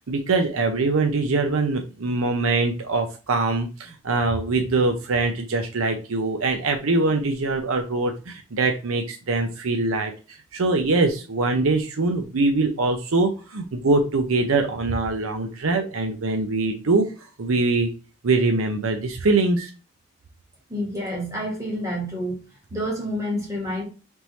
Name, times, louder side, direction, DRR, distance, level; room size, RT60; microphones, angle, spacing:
voice 1, 0.1-10.1 10.5-17.1 17.4-17.9 18.2-19.7, right 3 dB, 80° right, 0.6 m, -23 dB
voice 2, 20.7-22.4 22.7-23.8, equal, 15° right, 1.4 m, -28 dB
3.6 x 3.0 x 4.0 m
head